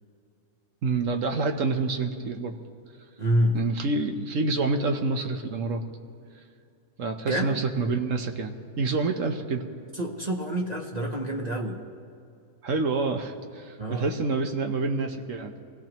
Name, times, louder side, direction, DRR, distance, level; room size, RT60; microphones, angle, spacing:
voice 1, 0.8-2.6 3.5-5.8 7.0-9.6 12.6-15.5, right 3 dB, 60° right, 5 dB, 1.3 m, -27 dB
voice 2, 3.2-3.6 7.3-7.6 9.9-11.8 13.8-14.1, equal, 30° right, 1 dB, 1.0 m, -27 dB
24.0 x 17.0 x 3.0 m, 2.5 s
omnidirectional pair, 1.6 m